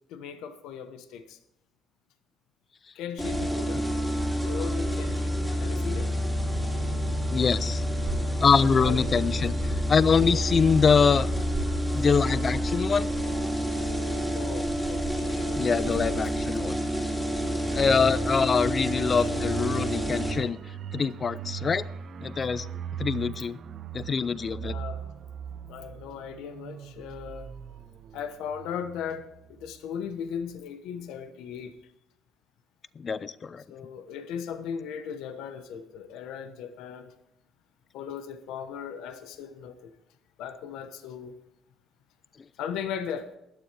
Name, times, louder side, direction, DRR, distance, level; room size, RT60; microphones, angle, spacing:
voice 1, 0.1-1.4 2.9-3.9 4.4-5.3 5.6-6.1 8.8-9.1 14.3-16.1 18.5-19.5 24.6-25.0 25.7-27.5 28.1-31.8 33.7-37.1 37.9-39.9 40.4-41.4 42.6-43.4, left 7 dB, 85° left, 1.0 m, -38 dB
sound 1, 3.2-20.3, equal, 5° left, 2.7 m, -28 dB
voice 2, 7.3-7.8 8.4-11.3 11.9-13.1 15.6-16.8 17.7-20.6 20.9-21.9 22.2-22.7 23.0-23.6 23.9-24.7 33.0-33.6, left 5 dB, 30° left, 0.4 m, -24 dB
sound 2, 7.4-16.4, right 3 dB, 20° right, 1.9 m, -40 dB
sound 3, 17.6-30.0 30.3-30.5, right 6 dB, 40° right, 0.6 m, -39 dB
16.5 x 12.0 x 3.4 m
cardioid pair, 160°, 0 cm